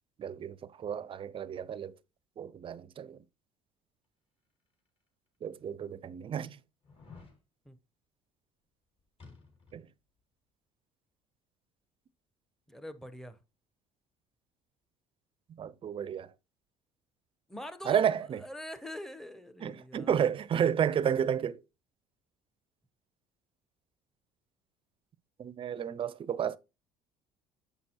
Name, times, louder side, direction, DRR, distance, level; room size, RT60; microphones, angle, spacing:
voice 1, 0.2-1.9 2.4-3.2 5.4-6.5 9.7-9.9 15.6-16.3 17.9-18.4 19.6-21.6 25.4-26.6, right 8 dB, 40° right, 0.5 m, -31 dB
sound 1, 4.9-5.0 5.6-5.7 6.8-7.4 9.2-9.9 10.2-10.3, left 4 dB, 45° left, 2.7 m, -53 dB
voice 2, 12.7-13.4 17.5-18.0 18.4-20.2, left 1 dB, 5° left, 0.8 m, -44 dB
7.0 x 5.9 x 2.9 m
hypercardioid pair, 70°, 14 cm